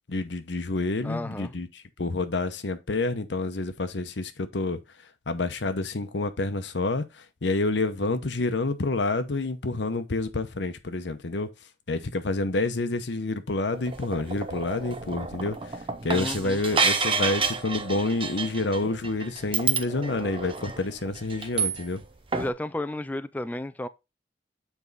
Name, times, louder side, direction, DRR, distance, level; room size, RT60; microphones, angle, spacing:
voice 1, 0.1-4.8 5.3-7.0 7.4-11.5 11.9-15.8 16.0-22.0, left 2 dB, 70° left, 0.9 m, -28 dB
voice 2, 1.0-1.5 16.1-16.6 22.3-23.9, left 1 dB, 10° left, 0.3 m, -32 dB
sound 1, 13.7-22.1 22.3-22.5, right 5 dB, 30° right, 0.7 m, -30 dB
7.2 x 4.6 x 4.0 m
head